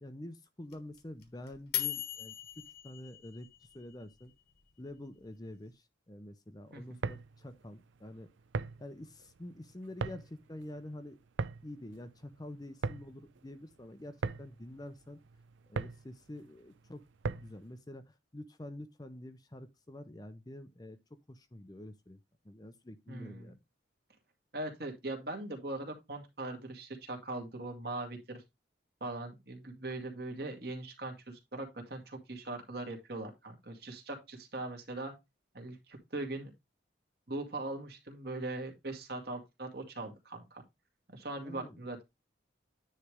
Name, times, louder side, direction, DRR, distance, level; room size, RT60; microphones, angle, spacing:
voice 1, 0.0-4.3 4.8-8.3 8.8-11.2 11.6-15.2 15.7-17.0 17.3-21.0 21.3-22.2 22.4-23.6 41.3-41.8, left 1 dB, 20° left, 0.6 m, -47 dB
sound 1, 0.7-3.9, left 12 dB, 55° left, 1.3 m, -38 dB
sound 2, 6.8-17.7, right 4 dB, 75° right, 0.5 m, -41 dB
voice 2, 23.1-23.5 24.5-28.4 29.0-35.1 35.5-36.5 37.3-40.6 41.1-42.0, right 2 dB, 55° right, 2.2 m, -40 dB
9.7 x 3.3 x 4.9 m
head